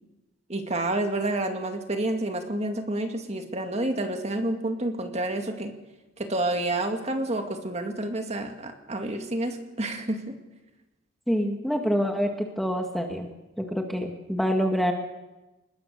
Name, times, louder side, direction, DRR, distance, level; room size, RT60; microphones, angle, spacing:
voice 1, 0.5-5.7 6.2-10.4, right 1 dB, 30° right, 5 dB, 2.2 m, -29 dB
voice 2, 11.3-13.3 13.6-14.9, equal, ahead, 3 dB, 1.6 m, -26 dB
23.0 x 21.0 x 6.7 m, 1.1 s
head